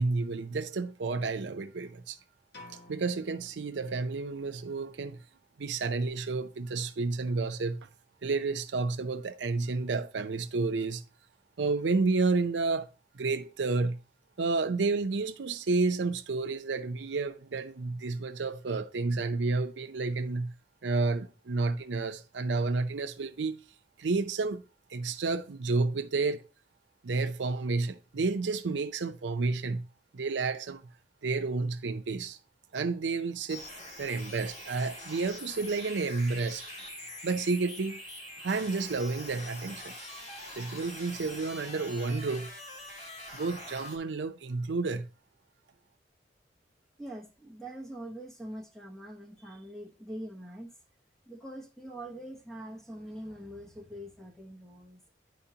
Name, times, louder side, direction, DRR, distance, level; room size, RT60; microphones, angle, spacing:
voice 1, 0.0-2.2 2.9-5.2 5.6-7.9 8.2-11.0 11.6-12.9 13.1-14.0 14.4-20.5 20.8-23.6 24.0-24.6 24.9-26.4 27.0-29.8 30.1-30.9 31.2-32.4 32.7-33.7 34.0-36.6 37.2-38.0 38.4-39.9 40.6-42.5 43.3-45.1, right 3 dB, 80° right, 0.6 m, -30 dB
sound 1, 2.5-4.4, left 2 dB, 65° left, 1.9 m, -53 dB
sound 2, 33.5-44.0, left 1 dB, 40° left, 2.0 m, -44 dB
voice 2, 47.0-50.7 51.3-55.0, right 1 dB, ahead, 0.9 m, -43 dB
10.5 x 4.5 x 2.8 m
head